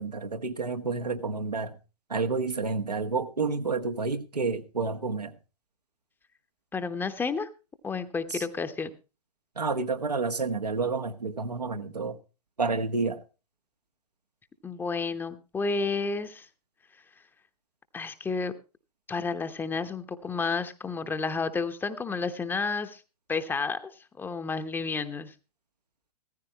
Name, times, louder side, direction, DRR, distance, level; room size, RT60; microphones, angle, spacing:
voice 1, 0.0-1.7 2.1-5.3 8.3-8.4 9.6-12.2 12.6-13.2, right 4 dB, 80° right, 1.5 m, -29 dB
voice 2, 6.7-7.5 7.8-9.0 14.6-16.5 17.9-18.5 19.1-23.0 23.3-25.3, left 4 dB, 10° left, 0.9 m, -31 dB
16.0 x 14.5 x 3.0 m
figure-of-eight pair, 110°, 20 cm